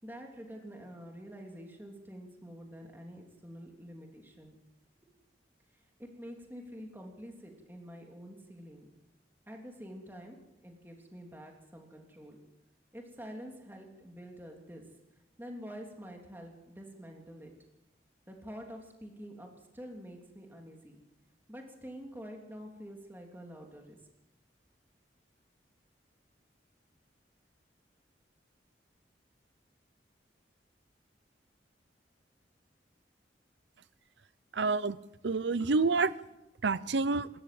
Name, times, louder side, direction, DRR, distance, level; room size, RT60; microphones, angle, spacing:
voice 1, 0.0-4.6 5.7-8.9 9.5-10.4 10.6-12.4 12.9-14.8 15.4-17.5 18.3-21.0 21.5-24.0, equal, 10° right, 1 dB, 3.1 m, -47 dB
voice 2, 34.5-35.0 35.2-36.1 36.6-37.3, right 4 dB, 75° right, 17 dB, 0.7 m, -28 dB
27.0 x 13.5 x 7.7 m, 0.99 s
head